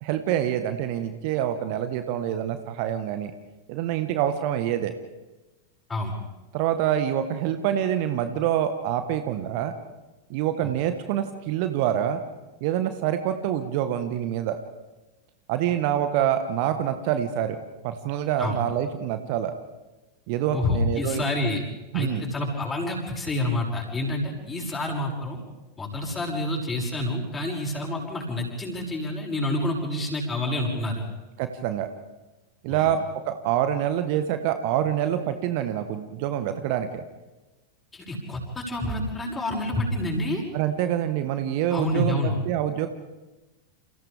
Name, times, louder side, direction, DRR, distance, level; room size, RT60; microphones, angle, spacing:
voice 1, 0.0-3.3 3.7-4.9 6.5-9.7 10.3-12.2 12.6-14.6 15.5-17.6 17.8-19.5 20.3-21.2 21.9-22.3 31.4-31.9 32.6-33.0 33.3-37.0 40.5-42.9, right 10 dB, 45° right, 9 dB, 1.3 m, -26 dB
voice 2, 20.5-21.6 21.9-25.4 25.8-31.0 32.7-32.9 37.9-40.4 41.7-42.4, left 1 dB, 15° left, -1 dB, 6.3 m, -28 dB
29.5 x 29.0 x 3.6 m, 1.1 s
figure-of-eight pair, 90°, 0 cm